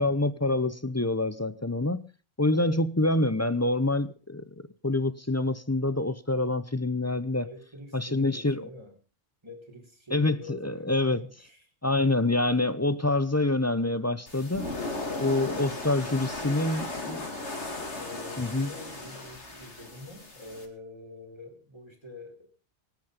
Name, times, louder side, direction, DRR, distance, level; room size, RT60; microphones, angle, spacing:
voice 1, 0.0-2.0 2.4-4.4 4.8-7.5 7.9-8.7 10.1-11.3 11.8-14.7 15.2-17.3 18.4-18.7, left 2 dB, 15° left, 0.6 m, -26 dB
voice 2, 2.5-2.8 7.3-8.9 9.4-11.6 17.9-22.5, left 2 dB, 25° right, 4.2 m, -45 dB
sound 1, 14.3-20.7, left 2 dB, 85° left, 3.2 m, -36 dB
23.0 x 9.1 x 5.2 m
omnidirectional pair, 1.1 m